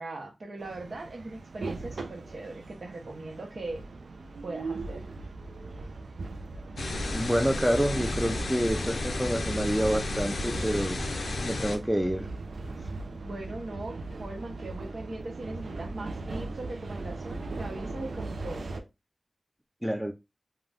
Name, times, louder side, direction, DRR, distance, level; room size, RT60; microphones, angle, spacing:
voice 1, 0.0-3.8 4.4-5.0 13.1-18.8, right 2 dB, 70° right, 0.9 m, -40 dB
sound 1, 0.6-18.8, right 3 dB, 85° right, 0.3 m, -39 dB
sound 2, 6.8-11.8, left 2 dB, 90° left, 0.4 m, -33 dB
voice 2, 7.1-11.0 11.4-12.3 19.8-20.1, equal, 5° right, 0.5 m, -28 dB
2.5 x 2.2 x 3.3 m
wide cardioid pair, 55°, 0 cm